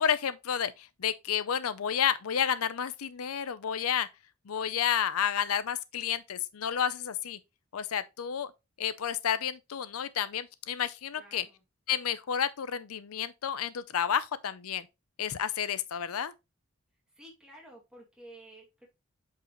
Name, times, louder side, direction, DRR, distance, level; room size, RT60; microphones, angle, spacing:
voice 1, 0.0-4.1 4.5-7.4 7.7-8.5 8.8-11.4 11.9-14.9 15.2-16.3, left 8 dB, 85° left, 0.5 m, -31 dB
voice 2, 11.2-11.6 17.1-18.9, right 1 dB, 5° right, 2.2 m, -52 dB
8.1 x 4.7 x 3.0 m
head